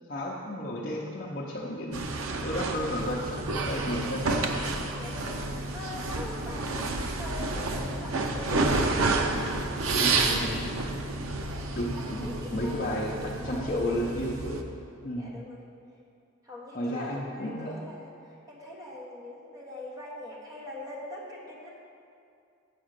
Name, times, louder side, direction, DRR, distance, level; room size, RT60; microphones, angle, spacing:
voice 1, 0.1-4.5 8.5-8.8 9.3-9.6 9.9-10.9 11.8-14.6 15.0-15.3 16.7-17.7, equal, 40° left, -5 dB, 0.7 m, -33 dB
sound 1, 1.9-14.6, right 3 dB, 85° right, 0.7 m, -30 dB
voice 2, 5.0-8.9 10.1-10.6 11.9-13.9 15.2-15.6 16.4-21.8, left 1 dB, 15° right, -5 dB, 1.4 m, -43 dB
8.4 x 4.9 x 6.5 m, 2.4 s
head